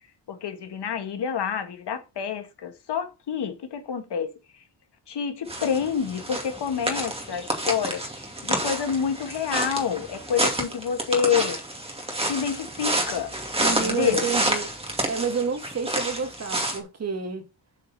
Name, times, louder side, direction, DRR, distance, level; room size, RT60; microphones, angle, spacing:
voice 1, 0.3-4.3 5.1-8.0 8.4-11.6 12.3-13.3 13.6-14.3, left 7 dB, 70° left, 1.8 m, -28 dB
sound 1, 5.5-16.8, right 1 dB, 15° right, 2.4 m, -29 dB
voice 2, 13.6-17.5, right 5 dB, 35° right, 1.8 m, -30 dB
8.4 x 5.0 x 5.6 m
wide cardioid pair, 130°, 42 cm